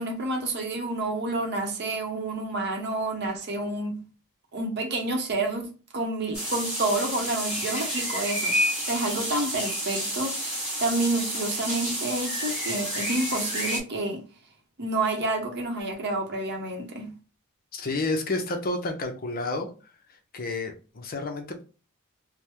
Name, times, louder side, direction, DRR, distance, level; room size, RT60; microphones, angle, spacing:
voice 1, 0.0-4.0 4.5-5.7 5.9-8.5 8.8-10.4 10.8-14.2 14.8-17.1, right 2 dB, 50° right, 0.7 m, -29 dB
sound 1, 6.3-13.8, equal, 5° right, 1.4 m, -30 dB
voice 2, 17.7-19.7 20.3-21.6, left 2 dB, 40° left, 0.6 m, -30 dB
3.3 x 2.1 x 2.9 m
head